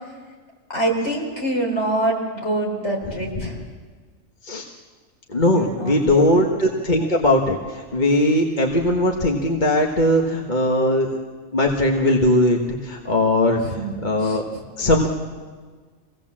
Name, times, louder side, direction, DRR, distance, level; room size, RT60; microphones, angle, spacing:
voice 1, 0.7-3.5 5.5-6.3 13.6-13.9 14.2-14.4, right 1 dB, 60° left, -1 dB, 4.8 m, -25 dB
voice 2, 5.3-11.2 11.5-13.6 14.0-14.4 14.8-15.1, left 1 dB, 35° left, 1 dB, 1.6 m, -19 dB
26.0 x 17.5 x 7.5 m, 1.5 s
omnidirectional pair, 1.3 m